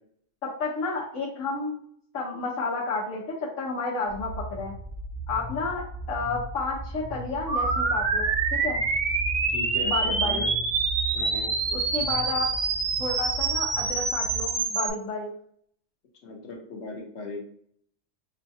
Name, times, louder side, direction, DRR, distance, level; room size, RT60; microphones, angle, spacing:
voice 1, 0.4-1.8 2.1-4.7 5.3-8.8 9.8-10.4 11.7-12.5 13.0-15.3, left 3 dB, 85° left, -6 dB, 1.3 m, -31 dB
sound 1, 4.1-14.5, right 2 dB, 35° left, 0.5 m, -37 dB
sound 2, 7.5-14.9, right 4 dB, 70° right, 1.2 m, -26 dB
voice 2, 9.5-10.5 11.1-11.5 16.2-17.4, left 2 dB, 60° left, 1 dB, 1.2 m, -38 dB
6.5 x 2.3 x 2.7 m, 0.63 s
omnidirectional pair, 1.3 m